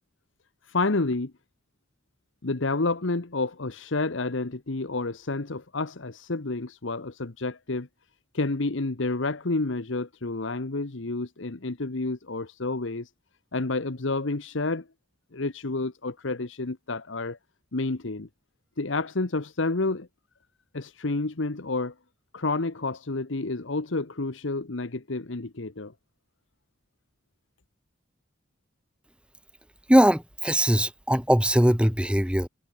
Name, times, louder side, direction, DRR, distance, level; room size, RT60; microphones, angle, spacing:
voice 1, 0.7-1.3 2.4-7.9 8.3-13.1 13.5-14.9 15.3-17.4 17.7-18.3 18.8-20.1 20.7-21.9 22.3-25.9, left 3 dB, 70° left, 1.1 m, -29 dB
voice 2, 29.9-32.5, equal, 5° right, 1.8 m, -21 dB
head